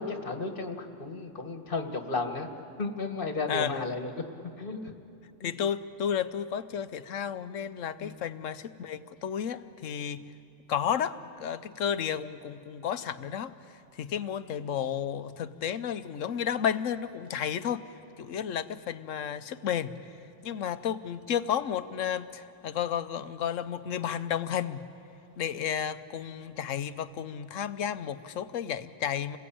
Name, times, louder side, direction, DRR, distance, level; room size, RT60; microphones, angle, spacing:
voice 1, 0.0-2.5 2.8-4.1 4.6-4.8 5.4-5.5 8.0-8.2, left 3 dB, 45° left, 5 dB, 1.8 m, -33 dB
voice 2, 3.5-3.8 5.4-10.2 10.7-13.5 14.0-17.8 18.2-19.9 20.4-24.8 25.4-29.4, left 8 dB, 90° left, 13 dB, 1.2 m, -32 dB
29.5 x 20.5 x 8.6 m, 2.7 s
omnidirectional pair, 1.3 m